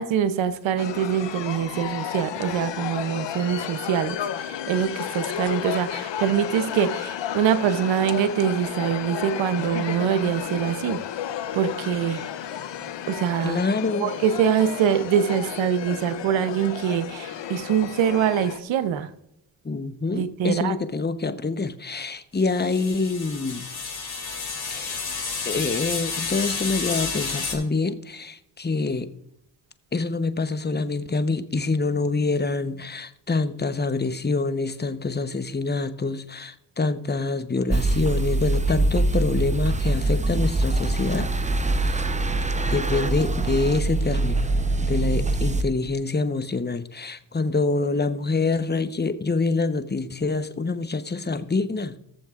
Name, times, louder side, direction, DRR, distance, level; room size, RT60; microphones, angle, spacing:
voice 1, 0.0-11.0 11.5-12.2 13.1-13.6 14.0-19.1 20.1-20.7, right 8 dB, 90° right, 12 dB, 0.8 m, -24 dB
sound 1, 0.8-18.6, left 9 dB, 70° left, 0.8 m, -32 dB
voice 2, 13.4-14.1 19.6-23.7 24.7-25.0 25.4-29.1 29.9-41.6 41.8-42.0 42.7-44.5 44.8-52.0, left 3 dB, 20° left, 10 dB, 0.9 m, -26 dB
sound 2, 22.4-27.5, left 4 dB, 55° left, 3.2 m, -31 dB
sound 3, 37.7-45.6, right 2 dB, 15° right, 0.7 m, -23 dB
17.0 x 7.1 x 2.5 m, 0.82 s
supercardioid pair, 40°, 45 cm